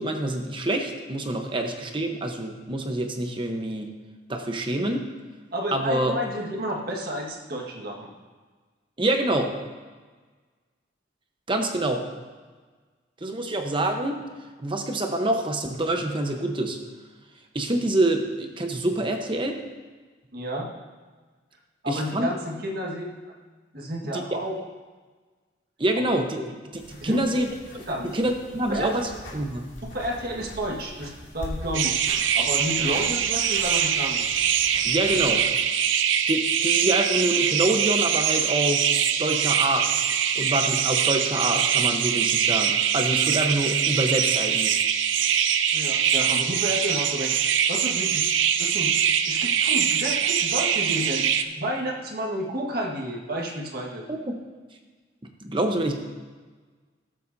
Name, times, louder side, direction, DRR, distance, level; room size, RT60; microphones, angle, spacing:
voice 1, 0.0-3.9 4.3-5.1 5.7-6.1 9.0-9.5 11.5-12.0 13.2-14.1 14.6-16.8 17.5-19.6 21.9-22.3 24.1-24.2 25.8-26.4 27.0-27.5 27.7-27.8 28.1-29.7 34.8-35.4 36.3-38.8 39.2-40.1 40.4-44.8 54.1-54.3 55.4-55.9, right 1 dB, 25° right, 4 dB, 1.0 m, -26 dB
voice 2, 5.5-8.1 20.3-20.7 21.8-23.3 23.7-24.5 27.0-27.2 27.9-28.2 28.5-28.9 29.8-32.0 32.3-34.3 45.7-48.3 48.6-54.0, equal, 55° right, -1 dB, 1.7 m, -31 dB
sound 1, 26.7-35.5, left 1 dB, 80° left, 2.6 m, -42 dB
sound 2, 31.7-51.4, right 8 dB, 90° right, 0.6 m, -23 dB
19.0 x 7.6 x 2.7 m, 1.4 s
head